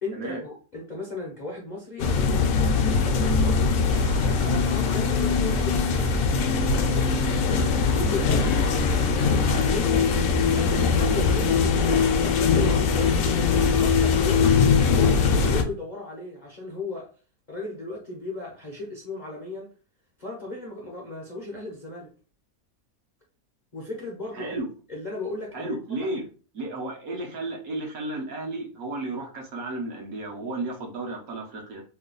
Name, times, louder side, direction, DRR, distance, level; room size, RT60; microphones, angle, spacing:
voice 1, 0.0-3.7 4.4-6.1 7.9-8.7 9.3-11.9 12.2-13.2 13.8-17.1 17.5-19.7 20.2-22.1 23.7-24.5 24.9-26.2, left 2 dB, 45° left, 0.6 m, -35 dB
sound 1, 2.0-15.6, left 5 dB, 70° left, 0.9 m, -21 dB
sound 2, 3.9-10.8, left 1 dB, 45° right, 0.6 m, -37 dB
voice 2, 24.3-24.7 25.5-26.2 26.5-31.8, right 2 dB, 70° right, 1.3 m, -33 dB
3.2 x 2.2 x 3.8 m
omnidirectional pair, 1.6 m